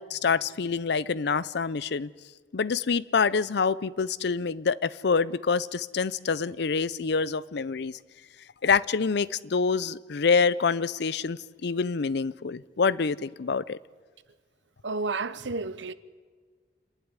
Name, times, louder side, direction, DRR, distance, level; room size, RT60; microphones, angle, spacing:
voice 1, 0.0-2.1 2.5-7.9 8.6-13.8, left 5 dB, 65° left, 0.5 m, -26 dB
voice 2, 14.8-15.9, right 3 dB, 80° right, 0.9 m, -31 dB
27.5 x 11.5 x 9.8 m
head